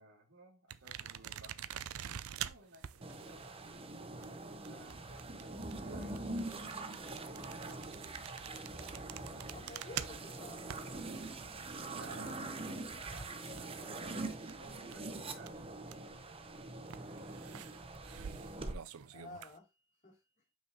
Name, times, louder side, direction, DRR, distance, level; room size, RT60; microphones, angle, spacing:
voice 1, 0.0-3.9 4.7-8.1 11.9-16.3, right 1 dB, 60° right, 2.6 m, -58 dB
sound 1, 0.7-14.1 14.3-16.2 16.8-19.6, right 10 dB, 90° right, 0.5 m, -47 dB
sound 2, 3.0-18.7, right 2 dB, 25° right, 0.8 m, -44 dB
voice 2, 9.5-10.6 19.1-20.3, left 2 dB, 35° left, 3.0 m, -52 dB
6.7 x 6.1 x 2.9 m
head